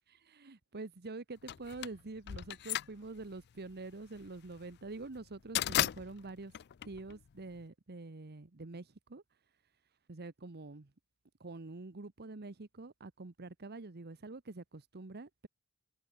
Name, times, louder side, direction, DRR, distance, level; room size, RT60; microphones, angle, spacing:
voice 1, 0.1-6.5 6.8-9.2 10.1-10.9 11.4-15.5, right 3 dB, 45° right, 1.0 m, -46 dB
sound 1, 1.5-7.6, left 12 dB, 50° left, 0.4 m, -37 dB
head